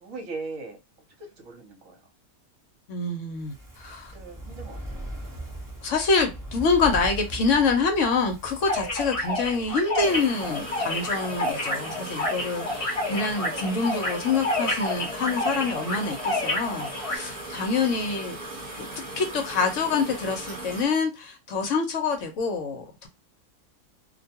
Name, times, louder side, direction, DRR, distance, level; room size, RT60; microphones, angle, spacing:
voice 1, 0.0-0.8 1.2-2.0 4.0-4.8 5.4-5.5 13.5-13.6 17.8-18.0, right 3 dB, 65° right, 1.2 m, -40 dB
voice 2, 2.9-4.1 5.8-18.4 18.8-23.1, left 4 dB, 65° left, 0.9 m, -26 dB
Fire, 3.3-10.7 11.0-11.1, right 1 dB, 20° right, 0.6 m, -39 dB
sound 1, 8.7-17.2, left 1 dB, 40° left, 0.5 m, -29 dB
sound 2, 10.0-20.9, right 2 dB, 35° right, 1.0 m, -38 dB
2.5 x 2.2 x 2.7 m
omnidirectional pair, 1.5 m